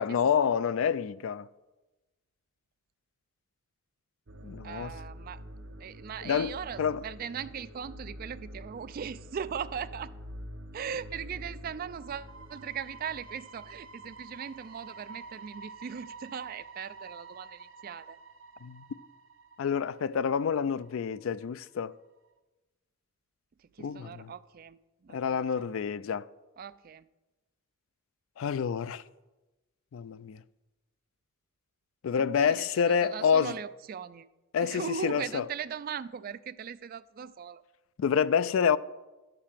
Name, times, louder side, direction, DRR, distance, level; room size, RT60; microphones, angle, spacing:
voice 1, 0.0-1.5 4.4-4.9 6.2-7.0 18.6-18.8 19.6-21.9 23.8-24.3 25.1-26.3 28.4-29.0 29.9-30.4 32.0-33.5 34.5-35.4 38.0-38.8, left 7 dB, 70° left, 0.3 m, -28 dB
sound 1, 4.3-21.0 21.3-21.4 21.9-22.0, right 1 dB, 65° right, 0.9 m, -47 dB
voice 2, 4.6-5.4 5.8-10.1 10.7-18.2 23.6-25.7 26.6-27.1 32.2-34.3 34.6-37.6, right 7 dB, 40° right, 0.3 m, -39 dB
11.5 x 6.8 x 5.7 m
head